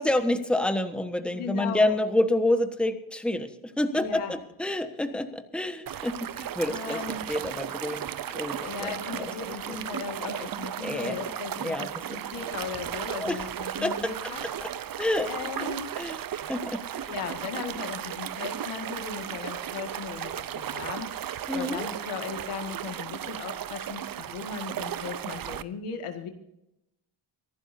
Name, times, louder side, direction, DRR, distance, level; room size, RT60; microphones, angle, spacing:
voice 1, 0.0-9.8 10.8-11.2 11.6-11.9 13.1-13.4 13.8-14.3 14.6-14.7 15.0-15.3 16.0-16.2 16.5-17.1 21.5-21.9, left 1 dB, ahead, 8 dB, 1.3 m, -28 dB
voice 2, 1.3-2.0 3.9-4.3 6.6-7.3 8.6-14.4 14.7-14.8 15.2-15.9 17.1-26.3, left 6 dB, 85° left, 6 dB, 2.0 m, -37 dB
sound 1, 5.9-25.6, right 10 dB, 45° right, 0.7 m, -35 dB
24.5 x 12.0 x 2.7 m, 0.84 s
cardioid pair, 95°, 49 cm